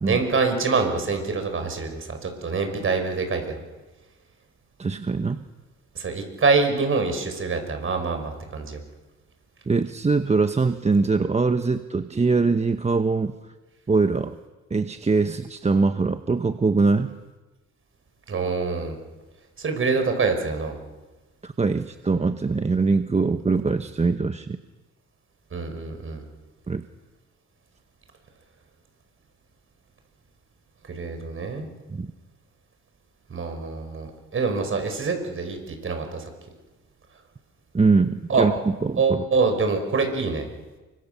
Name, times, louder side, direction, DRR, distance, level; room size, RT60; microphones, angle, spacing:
voice 1, 0.0-3.6 5.9-8.8 18.3-19.0 19.6-20.8 25.5-26.2 30.9-31.7 33.3-36.3 38.3-38.5 39.0-40.5, right 4 dB, 45° right, 6 dB, 6.0 m, -25 dB
voice 2, 4.8-5.4 9.7-13.3 13.9-14.4 14.7-17.1 21.4-24.6 26.7-26.8 31.9-32.1 37.7-38.5 38.8-39.2, right 4 dB, 20° right, 9 dB, 1.0 m, -22 dB
30.0 x 24.5 x 7.0 m, 1.2 s
cardioid pair, 90°, 30 cm